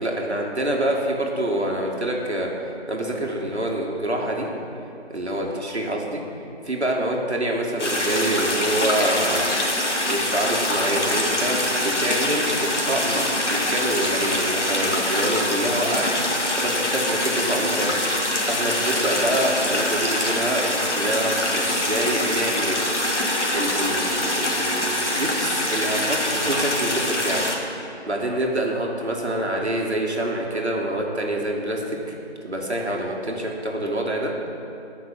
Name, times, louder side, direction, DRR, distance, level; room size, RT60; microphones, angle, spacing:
voice 1, 0.0-2.5 2.9-4.5 5.1-6.2 6.6-9.5 10.1-13.2 13.5-18.0 18.4-20.6 20.9-22.8 23.5-27.5 28.1-32.0 32.4-34.3, right 1 dB, 65° right, 0 dB, 1.9 m, -26 dB
sound 1, 7.8-27.6, left 1 dB, 80° left, 2.2 m, -24 dB
12.5 x 5.9 x 7.6 m, 2.8 s
figure-of-eight pair, 175°, 35 cm